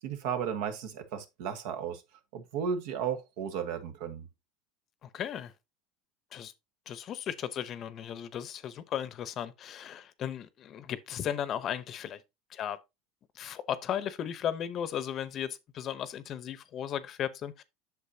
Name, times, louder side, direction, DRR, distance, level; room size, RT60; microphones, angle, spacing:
voice 1, 0.0-2.0 2.3-4.3, right 7 dB, 70° right, 1.4 m, -34 dB
voice 2, 5.0-5.5 6.3-6.5 6.9-12.2 12.5-12.8 13.3-17.6, left 9 dB, 40° left, 0.8 m, -36 dB
8.3 x 6.5 x 2.7 m
supercardioid pair, 135°, 0 cm